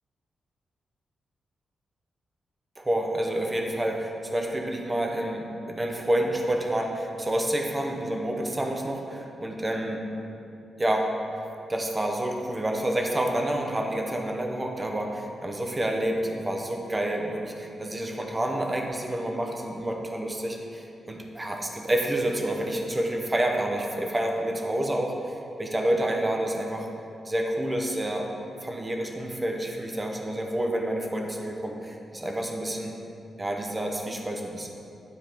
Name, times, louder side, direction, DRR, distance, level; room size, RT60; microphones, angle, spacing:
voice 1, 2.8-10.1 10.8-11.1 11.7-26.9 27.2-28.3 28.6-32.9 33.4-34.7, right 1 dB, 20° right, 2 dB, 0.7 m, -28 dB
9.6 x 4.4 x 3.4 m, 2.7 s
wide cardioid pair, 125°, 0 cm